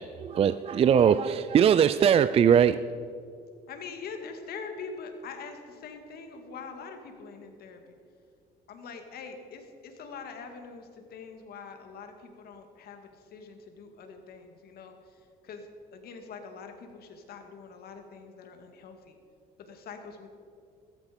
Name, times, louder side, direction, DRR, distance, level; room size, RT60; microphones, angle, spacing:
voice 1, 0.0-2.9, right 8 dB, 35° right, 14 dB, 0.4 m, -21 dB
voice 2, 3.7-8.0 8.7-19.2 19.6-20.3, left 5 dB, 65° left, 5 dB, 2.2 m, -44 dB
15.0 x 13.5 x 5.3 m, 2.4 s
cardioid pair, 110°, 17 cm